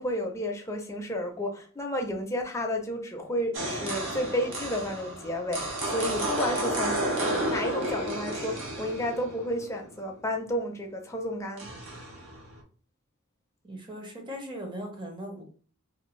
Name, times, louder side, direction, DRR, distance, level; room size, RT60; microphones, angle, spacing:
voice 1, 0.0-7.0 7.5-11.7, equal, 15° left, 2 dB, 0.5 m, -31 dB
sound 1, 3.5-9.9 11.6-12.6, right 1 dB, 65° right, 0.9 m, -32 dB
voice 2, 13.6-15.5, equal, 25° right, 2 dB, 0.8 m, -39 dB
2.6 x 2.6 x 3.1 m, 0.41 s
head